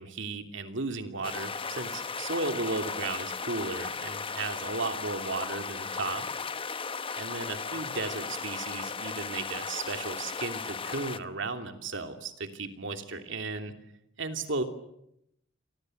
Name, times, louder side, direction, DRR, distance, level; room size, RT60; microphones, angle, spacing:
voice 1, 0.0-6.3 7.1-13.7 14.2-14.6, right 3 dB, 65° right, 7 dB, 2.9 m, -35 dB
sound 1, 1.2-11.2, left 5 dB, 25° left, 1.0 m, -36 dB
28.5 x 24.5 x 7.9 m, 0.79 s
head